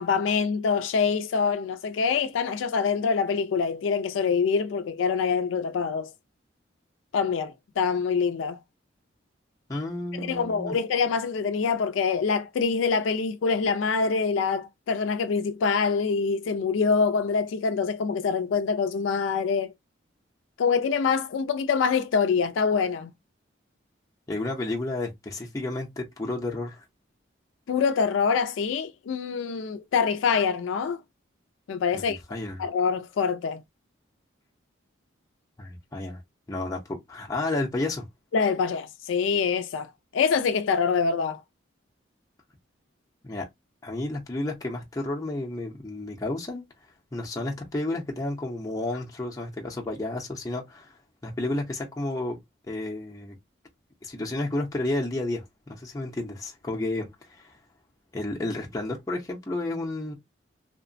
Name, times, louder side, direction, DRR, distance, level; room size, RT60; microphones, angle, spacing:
voice 1, 0.0-6.1 7.1-8.6 10.2-19.7 20.6-23.1 27.7-31.0 31.7-32.2 32.6-33.6 38.3-41.4, left 5 dB, 85° left, 0.3 m, -25 dB
voice 2, 9.7-10.8 24.3-26.8 31.9-32.0 32.3-32.6 35.6-36.2 36.5-38.1 43.2-43.5 43.8-46.6 47.1-50.9 51.2-52.4 52.7-53.4 54.0-57.5 58.1-60.1, left 2 dB, 20° left, 0.5 m, -31 dB
2.8 x 2.1 x 2.5 m
head